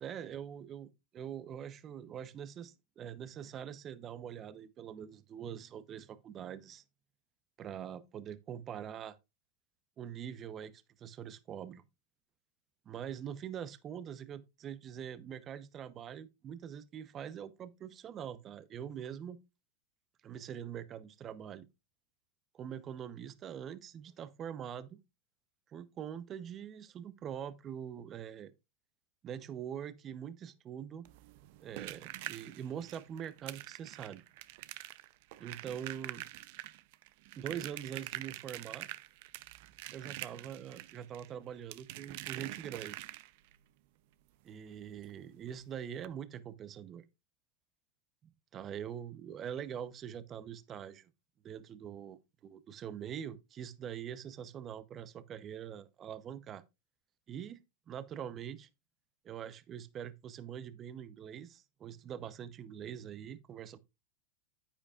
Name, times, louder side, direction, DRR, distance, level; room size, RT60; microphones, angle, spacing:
voice 1, 0.0-6.8 7.6-9.2 10.0-11.8 12.9-19.4 20.2-21.7 22.5-25.0 25.7-28.5 29.2-31.1 31.6-34.2 35.4-36.2 37.4-38.9 39.9-43.0 44.4-47.0 48.5-51.1 51.4-56.6 57.3-58.7 59.2-63.8, right 9 dB, 35° right, 0.8 m, -44 dB
sound 1, 31.0-43.6 45.0-45.1 45.4-45.5 46.0-46.1, right 17 dB, 60° right, 0.6 m, -45 dB
9.9 x 8.8 x 2.4 m
hypercardioid pair, 115°, 0 cm